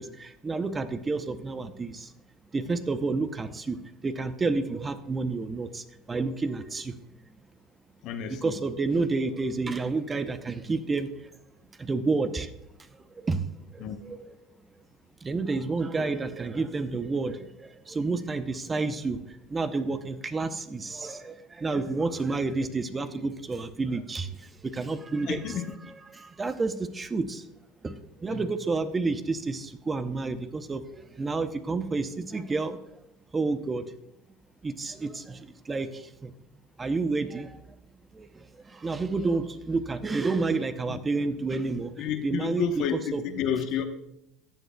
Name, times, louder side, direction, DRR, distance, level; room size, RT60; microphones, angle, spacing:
voice 1, 0.0-2.1 2.5-7.0 8.3-11.3 11.8-12.5 12.8-13.5 13.7-14.3 15.2-25.4 26.2-27.4 27.8-32.8 33.3-33.9 34.6-36.3 36.8-37.7 38.1-42.8 43.1-43.2, right 3 dB, 20° right, 11 dB, 0.7 m, -30 dB
voice 2, 8.0-8.6 13.8-14.0 25.2-25.7 28.3-28.4 40.5-41.0 42.0-43.9, left 8 dB, 60° left, 7 dB, 0.9 m, -31 dB
14.5 x 7.7 x 2.2 m, 0.82 s
supercardioid pair, 95°, 0 cm